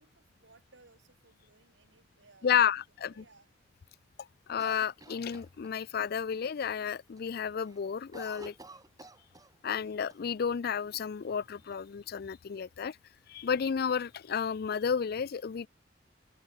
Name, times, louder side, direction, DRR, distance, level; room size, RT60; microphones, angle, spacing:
voice 1, 0.0-2.7 3.0-3.5, right 3 dB, 75° right, 3.7 m, -62 dB
voice 2, 2.4-3.2 4.5-8.5 9.6-13.0 13.3-15.7, left 7 dB, 55° left, 0.4 m, -31 dB
Cough, 4.6-6.1 6.4-6.5 6.9-7.3 7.6-9.8 10.1-10.2 10.9-11.7, right 2 dB, 20° right, 4.0 m, -52 dB
open air
head